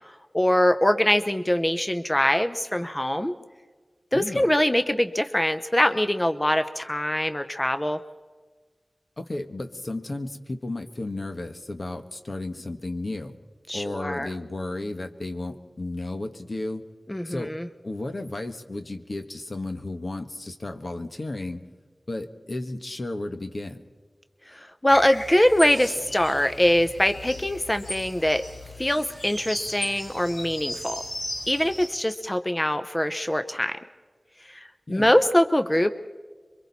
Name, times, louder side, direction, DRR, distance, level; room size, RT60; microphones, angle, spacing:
voice 1, 0.0-3.3 4.1-8.0 13.7-14.3 17.1-17.7 24.5-28.4 28.8-31.0 31.5-33.8 34.4-34.6 34.9-35.9, left 1 dB, 20° left, 9 dB, 0.8 m, -23 dB
voice 2, 4.1-4.5 9.2-13.3 13.7-16.8 17.2-17.5 17.8-21.6 22.1-23.9 34.9-35.1, left 2 dB, 60° left, 6 dB, 1.5 m, -33 dB
sound 1, 24.9-31.9, left 1 dB, 80° left, 5.3 m, -37 dB
27.0 x 23.5 x 4.2 m, 1.4 s
wide cardioid pair, 60°, 0 cm